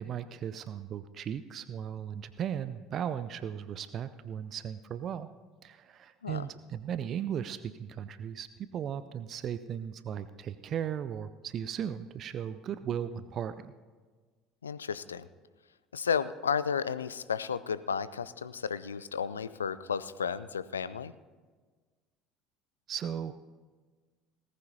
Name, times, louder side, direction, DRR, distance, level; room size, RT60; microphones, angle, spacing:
voice 1, 0.0-5.3 5.6-8.5 8.7-13.7 22.9-23.3, right 9 dB, 40° right, 12 dB, 0.4 m, -36 dB
voice 2, 14.6-15.3 15.9-21.1, left 6 dB, 80° left, 16 dB, 0.4 m, -33 dB
18.5 x 15.0 x 2.8 m, 1.4 s
figure-of-eight pair, 65°, 0 cm